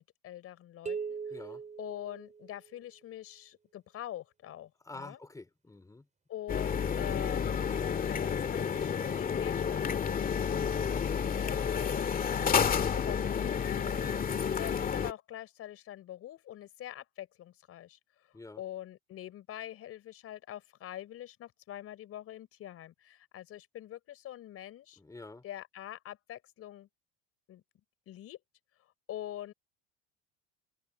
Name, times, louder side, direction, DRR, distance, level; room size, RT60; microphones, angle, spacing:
voice 1, 0.0-1.4 1.8-5.2 6.3-7.7 8.1-10.4 11.4-12.1 12.7-14.0 14.6-18.0 18.3-25.0 25.4-26.9 27.5-27.6 28.1-28.4 28.8-29.5, left 12 dB, 45° left, 4.7 m, -44 dB
sound 1, 0.9-2.8, right 5 dB, 20° right, 6.2 m, -40 dB
voice 2, 1.3-1.6 4.8-6.1 14.0-14.3 18.3-18.6 25.0-25.4, left 2 dB, 10° left, 4.7 m, -47 dB
sound 2, 6.5-15.1, left 7 dB, 25° left, 2.1 m, -30 dB
cardioid pair, 125°, 32 cm